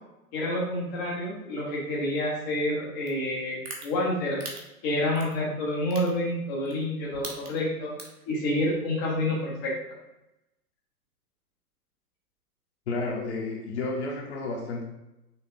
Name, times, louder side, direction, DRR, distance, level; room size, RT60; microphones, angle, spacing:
voice 1, 0.3-4.4 4.8-7.9 8.3-9.7, left 1 dB, 15° left, -4 dB, 0.5 m, -28 dB
sound 1, 3.1-3.2 3.6-3.8 4.4-4.6 5.1-5.3 5.9-6.1 6.6-6.8 7.1-7.6 8.0-8.2, right 4 dB, 70° right, 1.2 m, -38 dB
voice 2, 12.9-14.8, left 3 dB, 45° left, -2 dB, 0.9 m, -31 dB
5.8 x 3.2 x 2.6 m, 0.92 s
figure-of-eight pair, 115°, 48 cm